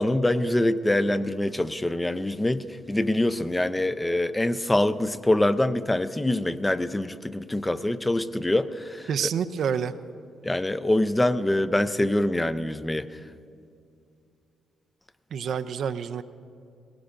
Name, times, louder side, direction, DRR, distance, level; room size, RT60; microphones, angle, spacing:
voice 1, 0.0-9.3 10.4-13.1, left 1 dB, 15° left, 12 dB, 0.6 m, -25 dB
voice 2, 9.1-9.9 15.3-16.2, right 7 dB, 65° right, 10 dB, 0.5 m, -28 dB
19.5 x 18.0 x 2.5 m, 2.5 s
hypercardioid pair, 45°, 0 cm